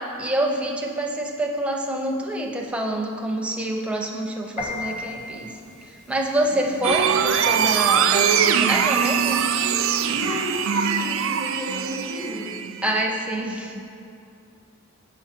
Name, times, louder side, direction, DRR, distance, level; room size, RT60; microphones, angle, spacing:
voice 1, 0.0-9.5 12.8-13.8, right 1 dB, 5° right, 0 dB, 0.5 m, -27 dB
Piano, 4.6-10.4, left 2 dB, 30° left, 1.0 m, -39 dB
voice 2, 6.4-7.0 10.1-12.6, equal, 55° left, -6 dB, 1.7 m, -33 dB
sound 1, 6.8-13.0, right 7 dB, 60° right, 0.3 m, -22 dB
7.0 x 6.1 x 4.4 m, 2.6 s
head